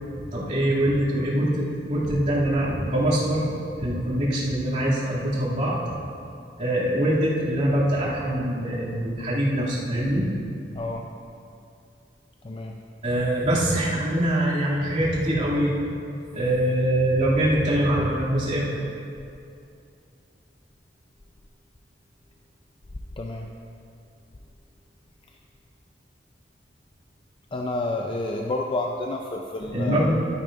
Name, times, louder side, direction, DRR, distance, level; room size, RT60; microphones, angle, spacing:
voice 1, 0.3-5.8 6.6-10.3 13.0-15.8 16.3-18.7 29.7-30.1, right 1 dB, 40° right, -8 dB, 2.4 m, -23 dB
voice 2, 10.7-11.1 12.4-12.8 23.2-23.5 27.5-30.1, left 2 dB, 30° left, 1 dB, 0.4 m, -29 dB
12.5 x 9.9 x 2.5 m, 2.5 s
head